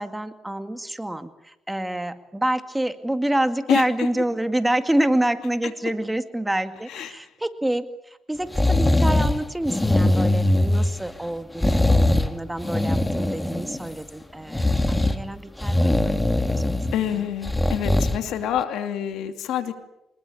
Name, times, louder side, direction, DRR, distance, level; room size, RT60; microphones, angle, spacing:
voice 1, 0.0-17.3, right 1 dB, 10° right, 9 dB, 2.1 m, -27 dB
voice 2, 3.7-4.1 6.9-7.1 16.9-19.7, left 10 dB, 85° left, 8 dB, 2.7 m, -27 dB
sound 1, 8.5-9.3 9.6-11.1 11.6-12.3 12.6-13.9 14.5-15.2 15.6-17.0 17.4-18.2 18.6-18.7, left 1 dB, 10° left, 2.1 m, -21 dB
25.5 x 21.5 x 8.5 m, 0.87 s
cardioid pair, 90°, 0 cm